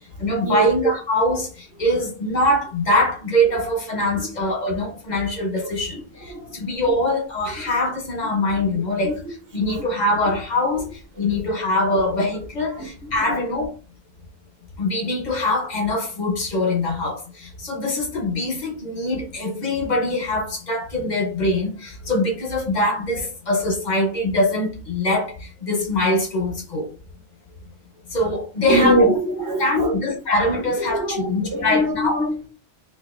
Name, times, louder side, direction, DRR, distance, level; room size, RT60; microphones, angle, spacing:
voice 1, 0.2-9.2 9.5-10.9 11.2-13.7 14.8-26.9 28.1-29.0 29.6-32.2, left 1 dB, 40° left, 0.8 m, -23 dB
voice 2, 6.3-6.9 7.6-7.7 9.0-9.2 9.7-9.8 11.2-11.3 11.9-12.0 12.7-12.9 13.2-13.4 28.6-30.0 30.8-32.5, right 1 dB, 15° right, 0.9 m, -23 dB
4.1 x 2.5 x 2.4 m
omnidirectional pair, 1.3 m